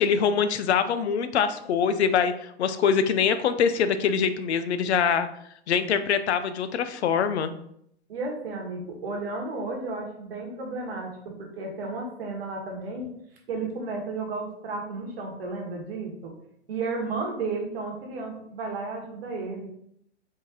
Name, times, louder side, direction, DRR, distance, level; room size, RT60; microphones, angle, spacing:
voice 1, 0.0-5.3 5.7-7.5, left 7 dB, 70° left, 11 dB, 0.5 m, -24 dB
voice 2, 8.1-13.1 13.5-16.3 16.7-19.7, right 3 dB, 60° right, 1 dB, 1.2 m, -33 dB
3.5 x 2.8 x 2.8 m, 0.71 s
hypercardioid pair, 120°, 34 cm